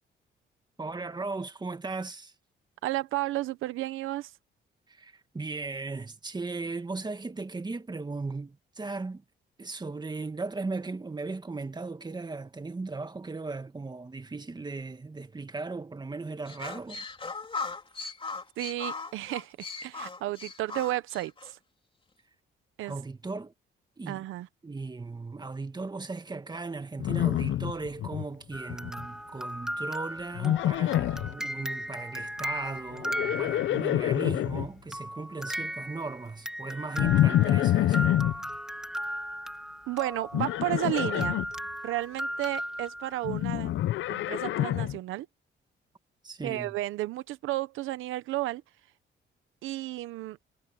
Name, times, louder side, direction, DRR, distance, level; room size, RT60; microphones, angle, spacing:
voice 1, 0.8-2.3 4.9-9.2 9.6-17.0 22.8-23.5 24.0-24.2 24.6-38.1 46.2-46.7, right 3 dB, 20° right, 2.0 m, -37 dB
voice 2, 2.8-4.3 18.6-21.6 22.8-22.9 24.1-24.5 39.9-41.4 41.8-43.7 44.1-45.3 46.4-48.6 49.6-50.4, right 16 dB, 90° right, 0.9 m, -32 dB
sound 1, 16.5-21.5, left 4 dB, 25° left, 3.0 m, -38 dB
Livestock farm animals working animals, 27.0-28.3 28.5-29.1 30.4-31.3 32.9-34.7 37.0-38.4 40.3-41.5 43.2-45.0, left 13 dB, 75° left, 0.7 m, -26 dB
sound 2, 28.5-34.1 34.9-43.4, equal, 5° right, 2.3 m, -37 dB
cardioid pair, 90°, 20 cm